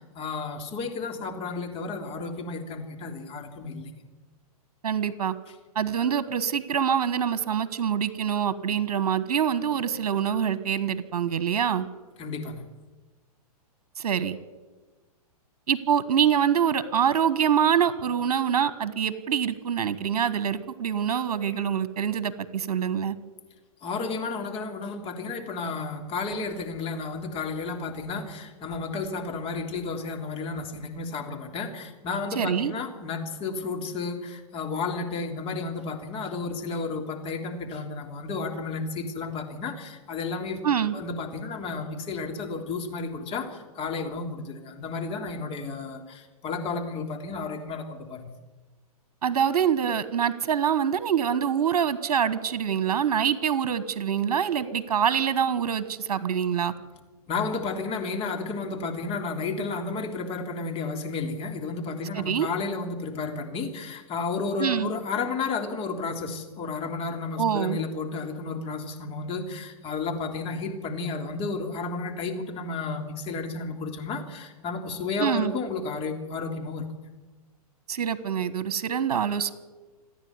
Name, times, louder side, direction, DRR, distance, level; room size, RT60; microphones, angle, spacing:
voice 1, 0.0-3.9 12.2-12.6 23.8-40.6 40.9-48.3 57.3-76.9, left 4 dB, 30° left, 3 dB, 3.3 m, -32 dB
voice 2, 4.8-5.3 5.7-11.9 14.0-14.4 15.7-23.1 32.3-32.7 40.6-40.9 49.2-56.7 62.1-62.5 64.6-64.9 67.4-67.8 75.2-75.5 77.9-79.5, right 8 dB, 70° right, 14 dB, 1.3 m, -25 dB
27.5 x 10.0 x 9.6 m, 1.2 s
hypercardioid pair, 125°, 20 cm